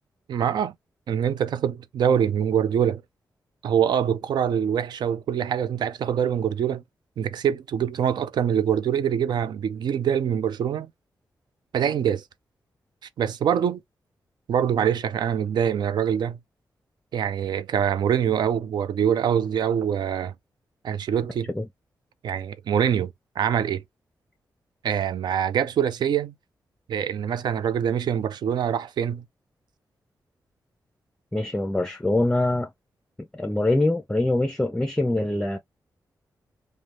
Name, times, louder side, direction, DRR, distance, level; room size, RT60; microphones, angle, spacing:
voice 1, 0.3-0.7 1.1-3.0 3.6-6.8 7.2-10.9 11.7-12.2 13.2-13.8 14.5-16.4 17.1-20.3 20.8-21.5 22.2-23.8 24.8-26.3 26.9-29.2, right 8 dB, 75° right, 0.4 m, -24 dB
voice 2, 31.3-32.7 33.2-35.6, left 2 dB, 10° left, 0.5 m, -24 dB
2.6 x 2.0 x 3.1 m
cardioid pair, 60°, 7 cm